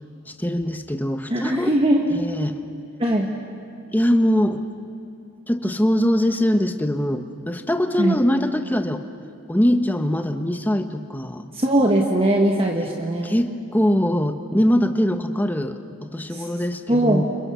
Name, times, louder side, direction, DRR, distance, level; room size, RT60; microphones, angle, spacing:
voice 1, 0.3-1.7 2.1-2.6 3.9-4.6 5.5-9.0 9.5-11.4 13.2-17.2, equal, 10° left, 7 dB, 1.2 m, -22 dB
voice 2, 1.3-2.0 3.0-3.3 8.0-8.1 11.5-13.3 16.3-16.4 16.9-17.2, right 1 dB, 25° right, 1 dB, 1.7 m, -20 dB
30.0 x 28.0 x 7.0 m, 2.9 s
head